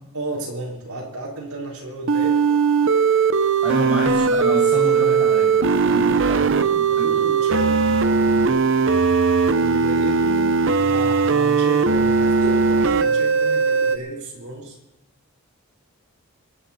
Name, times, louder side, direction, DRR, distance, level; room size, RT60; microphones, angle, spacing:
voice 1, 0.1-2.4 3.8-3.9 5.9-8.8 9.5-10.5 10.8-14.8, right 1 dB, 80° right, -4 dB, 4.0 m, -33 dB
sound 1, 2.1-14.0, right 5 dB, 60° right, 0.8 m, -18 dB
voice 2, 3.6-5.5 5.8-6.4 6.7-7.2, equal, 5° right, -4 dB, 6.5 m, -29 dB
25.5 x 10.5 x 4.3 m, 0.96 s
head